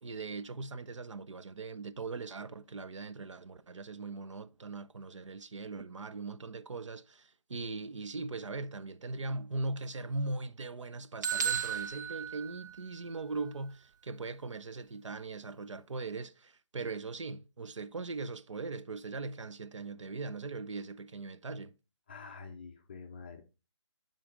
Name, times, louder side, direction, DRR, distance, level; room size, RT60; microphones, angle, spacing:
voice 1, 0.0-21.7, right 3 dB, 75° right, 0.6 m, -40 dB
sound 1, 11.2-13.2, right 7 dB, 40° right, 0.5 m, -35 dB
voice 2, 22.1-23.4, left 5 dB, 20° left, 0.4 m, -47 dB
9.8 x 3.8 x 3.7 m
figure-of-eight pair, 160°, 16 cm